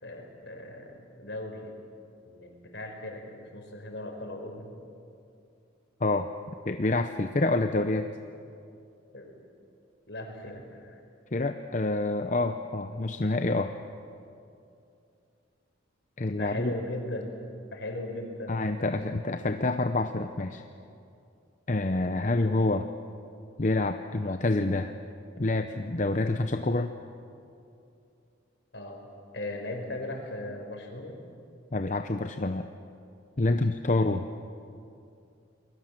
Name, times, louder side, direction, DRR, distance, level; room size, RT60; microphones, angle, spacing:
voice 1, 0.0-1.7 2.2-4.7 9.1-9.3 10.1-10.9 16.3-17.4 17.7-18.9 28.7-29.1 29.3-31.2 33.4-33.6, left 1 dB, 65° left, 3 dB, 4.8 m, -38 dB
voice 2, 6.7-8.1 11.3-13.7 16.2-16.7 18.5-20.6 21.7-22.9 23.6-24.9 25.4-26.9 31.7-32.7 33.4-34.3, left 2 dB, 40° left, 7 dB, 0.7 m, -27 dB
28.5 x 22.0 x 7.5 m, 2.6 s
head